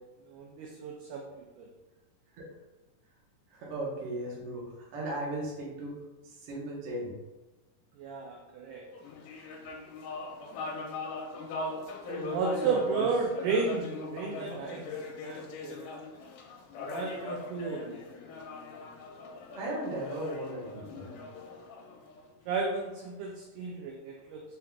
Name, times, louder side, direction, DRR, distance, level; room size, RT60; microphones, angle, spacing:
voice 1, 0.3-1.7 8.0-8.8 12.3-14.9 15.2-15.9 16.8-18.1 22.5-24.4, right 4 dB, 85° right, 0 dB, 1.8 m, -33 dB
voice 2, 3.5-6.0 6.2-7.1 12.1-13.0 19.5-21.2, right 1 dB, 65° right, -4 dB, 1.5 m, -37 dB
sound 1, 8.9-22.6, left 3 dB, 80° left, 2.2 m, -41 dB
5.6 x 3.5 x 2.3 m, 1.1 s
omnidirectional pair, 4.1 m